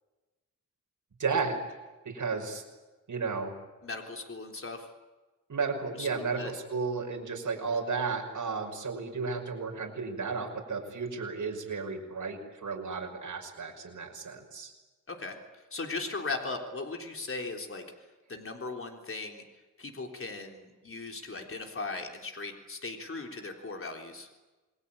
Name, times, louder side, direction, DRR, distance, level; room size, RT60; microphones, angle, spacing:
voice 1, 1.2-1.6 2.0-2.6 3.1-3.5 5.5-14.7, right 4 dB, 70° right, 1 dB, 5.8 m, -33 dB
voice 2, 3.8-4.9 6.0-6.5 15.1-15.4 15.7-17.9 18.3-19.4 19.8-24.3, left 3 dB, 45° left, 3 dB, 3.6 m, -38 dB
28.0 x 21.0 x 8.9 m, 1.2 s
wide cardioid pair, 120°, 31 cm